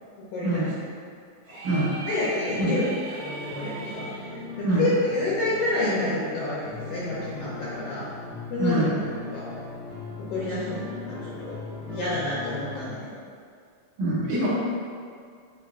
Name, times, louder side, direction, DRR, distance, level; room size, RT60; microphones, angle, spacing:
voice 1, 0.3-0.7 1.5-8.0 8.5-9.0 9.3-9.5 10.3-13.1, left 2 dB, 80° left, -9 dB, 1.7 m, -29 dB
sound 1, 1.4-4.2, right 2 dB, 90° right, 1.1 m, -38 dB
sound 2, 3.2-12.9, left 3 dB, 65° left, 1.1 m, -39 dB
voice 2, 8.6-9.0 14.0-14.5, right 2 dB, 70° right, -9 dB, 2.1 m, -24 dB
5.4 x 2.5 x 2.4 m, 2.2 s
omnidirectional pair, 3.8 m